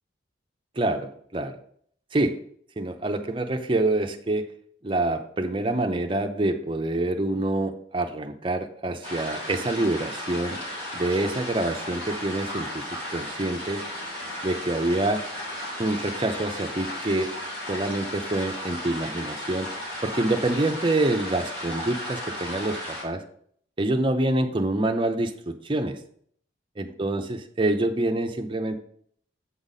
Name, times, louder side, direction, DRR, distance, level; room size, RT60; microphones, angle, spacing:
voice 1, 0.8-1.6 2.1-2.4 2.8-4.5 4.8-10.6 10.9-12.8 13.1-13.8 14.4-15.2 15.8-17.3 17.7-19.7 20.0-23.2 23.8-26.0 26.8-28.8, right 2 dB, 25° right, 6 dB, 0.6 m, -26 dB
sound 1, 9.0-23.0, left 1 dB, 55° left, 3.6 m, -35 dB
8.0 x 5.1 x 4.1 m, 0.63 s
head